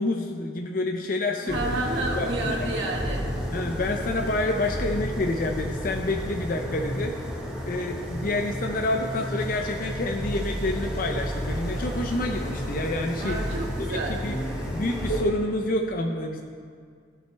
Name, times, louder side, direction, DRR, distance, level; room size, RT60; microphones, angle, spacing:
voice 1, 0.0-1.8 2.1-2.7 3.5-7.2 7.7-13.4 13.9-14.4 14.6-16.4, left 2 dB, 50° left, 3 dB, 0.5 m, -28 dB
voice 2, 1.4-3.2 13.2-14.2, right 2 dB, 80° right, -2 dB, 1.6 m, -30 dB
sound 1, 1.5-15.2, equal, 5° right, 1.3 m, -32 dB
sound 2, 10.2-15.4, right 3 dB, 70° left, 1.0 m, -38 dB
15.5 x 6.1 x 3.3 m, 2.1 s
head